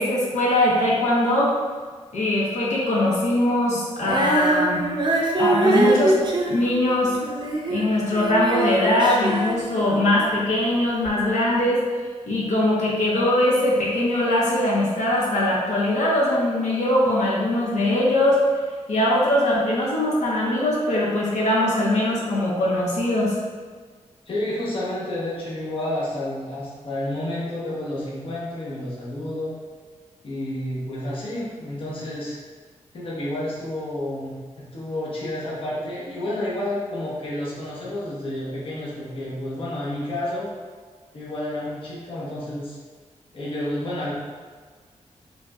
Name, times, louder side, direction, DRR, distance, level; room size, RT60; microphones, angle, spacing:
voice 1, 0.0-1.5 2.1-4.8 5.4-6.2 6.5-7.2 7.7-11.8 12.3-18.4 18.9-23.3, left 1 dB, 70° left, -6 dB, 1.0 m, -21 dB
Female singing, 4.0-10.4 11.0-11.1, right 2 dB, 35° right, 0.6 m, -23 dB
voice 2, 24.3-29.5 30.2-32.4 32.9-40.5 41.1-42.8 43.3-44.1, left 1 dB, 45° left, -7 dB, 0.9 m, -30 dB
5.1 x 2.9 x 2.3 m, 1.5 s
wide cardioid pair, 115°, 12 cm